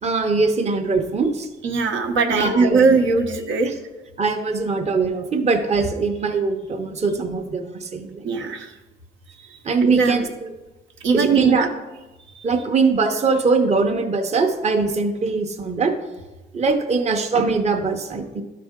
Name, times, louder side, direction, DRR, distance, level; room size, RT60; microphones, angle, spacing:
voice 1, 0.0-1.5 2.3-3.0 4.2-8.2 9.6-10.5 11.1-11.7 12.4-15.9 16.5-18.4, right 4 dB, 35° right, 4 dB, 0.8 m, -22 dB
voice 2, 1.6-3.7 8.2-8.7 9.5-10.3 11.0-11.7 12.3-12.4, right 4 dB, 75° right, 3 dB, 0.9 m, -20 dB
12.0 x 4.2 x 3.6 m, 1.1 s
cardioid pair, 90°, 20 cm